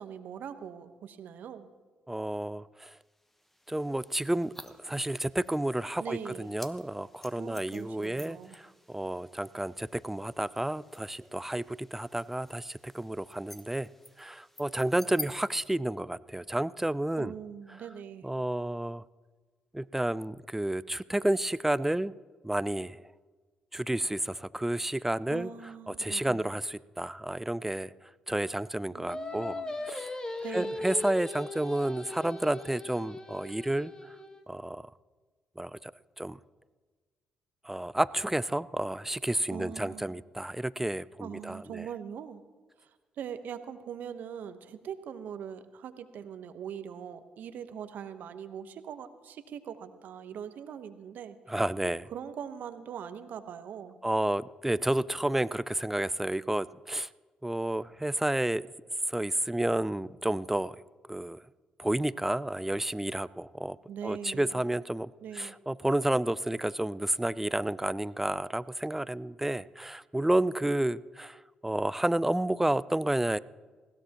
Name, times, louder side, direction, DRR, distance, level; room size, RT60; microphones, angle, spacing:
voice 1, 0.0-1.7 6.0-6.5 7.4-8.6 17.2-18.3 25.3-26.5 28.9-29.7 30.4-30.8 39.5-40.2 41.2-42.4 42.8-42.9 43.2-51.4 52.1-54.0 63.9-64.6 65.2-65.6, right 8 dB, 65° right, 10 dB, 1.0 m, -42 dB
voice 2, 2.1-3.0 3.7-13.9 14.2-17.3 18.2-19.0 19.7-22.1 22.4-23.1 23.7-25.5 25.9-30.2 30.5-34.2 34.5-34.9 35.6-35.9 36.2-36.4 37.6-41.9 51.5-52.0 54.0-57.1 57.4-58.7 59.1-60.8 61.1-61.4 61.8-63.8 64.0-73.4, right 1 dB, 10° right, 18 dB, 0.5 m, -31 dB
sound 1, 2.9-15.3, left 1 dB, 5° left, 1.1 m, -50 dB
Singing, 29.1-34.4, left 2 dB, 25° left, 1.4 m, -39 dB
20.0 x 16.5 x 3.0 m, 1.4 s
hypercardioid pair, 45°, 3 cm